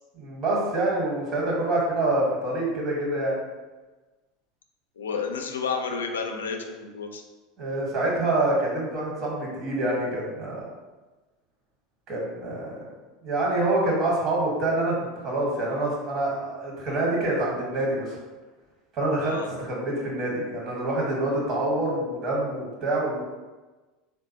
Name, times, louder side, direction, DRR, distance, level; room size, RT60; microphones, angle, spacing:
voice 1, 0.1-3.4 7.6-10.6 12.1-12.9 13.2-18.2 18.9-23.2, right 2 dB, 45° right, -3 dB, 1.3 m, -26 dB
voice 2, 5.0-7.2 19.2-19.5, left 5 dB, 85° left, 3 dB, 0.3 m, -31 dB
3.8 x 2.1 x 2.8 m, 1.2 s
hypercardioid pair, 80°, 0 cm